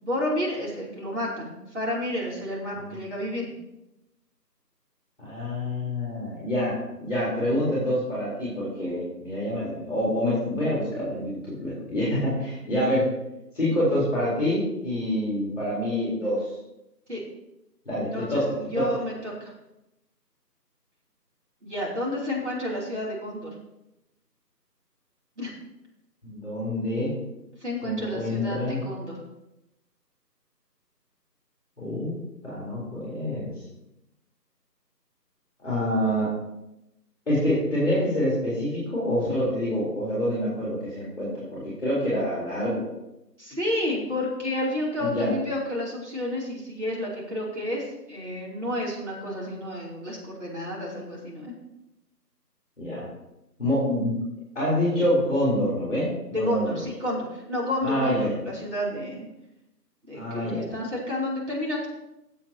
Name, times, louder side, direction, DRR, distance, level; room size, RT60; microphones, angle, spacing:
voice 1, 0.0-3.5 17.1-17.2 18.1-19.5 21.6-23.5 25.4-25.5 27.6-29.1 43.4-51.5 56.3-59.3 60.1-61.9, left 1 dB, 45° right, -5 dB, 3.1 m, -30 dB
voice 2, 5.2-13.1 13.5-16.5 17.8-18.9 26.2-27.1 27.8-28.8 31.8-32.2 32.4-33.5 35.6-36.3 37.3-42.9 45.0-45.3 52.8-53.0 53.6-54.1 54.5-56.8 57.8-58.4 60.1-60.7, equal, ahead, -13 dB, 2.9 m, -26 dB
16.0 x 7.5 x 2.9 m, 0.91 s
figure-of-eight pair, 170°, 50 cm